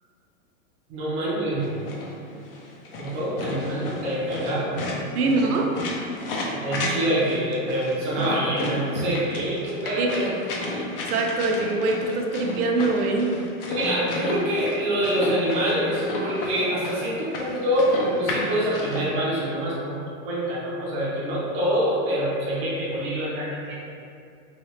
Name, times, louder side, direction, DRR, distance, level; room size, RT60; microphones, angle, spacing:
voice 1, 0.9-1.7 3.0-4.9 5.2-5.5 6.5-10.3 13.7-23.7, equal, 15° right, -8 dB, 0.5 m, -26 dB
sound 1, 1.6-19.0, left 2 dB, 40° left, 0.5 m, -33 dB
voice 2, 5.1-5.7 6.3-6.5 10.0-10.2 11.0-13.4, right 3 dB, 80° right, 1 dB, 0.7 m, -24 dB
3.1 x 2.8 x 3.1 m, 2.4 s
supercardioid pair, 150°, 44 cm